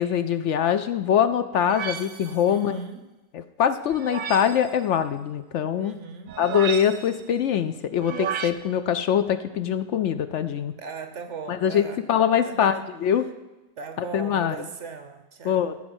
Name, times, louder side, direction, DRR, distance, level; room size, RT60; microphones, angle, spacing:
voice 1, 0.0-2.8 3.3-5.9 6.4-10.7 11.5-13.2 14.1-14.6 15.4-15.7, left 9 dB, 65° left, 11 dB, 0.8 m, -23 dB
sound 1, 1.7-2.5 3.9-4.7 6.3-7.2 8.0-8.5, right 8 dB, 80° right, 1.1 m, -33 dB
voice 2, 2.4-3.1 5.7-6.4 8.5-8.6 10.8-12.0 12.4-12.9 13.8-15.8, right 5 dB, 60° right, 8 dB, 1.4 m, -38 dB
14.5 x 5.0 x 7.9 m, 1.1 s
omnidirectional pair, 1.4 m